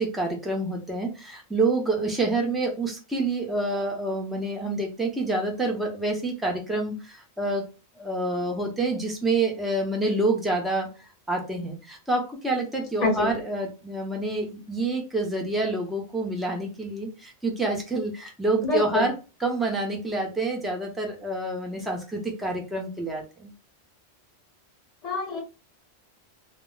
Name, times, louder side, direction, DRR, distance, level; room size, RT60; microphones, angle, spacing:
voice 1, 0.0-7.7 8.0-19.1 19.4-23.5, right 2 dB, ahead, 1 dB, 0.4 m, -27 dB
voice 2, 13.0-13.4 18.6-19.1 25.0-25.4, left 3 dB, 40° left, -1 dB, 0.8 m, -25 dB
2.1 x 2.1 x 3.7 m, 0.31 s
omnidirectional pair, 1.1 m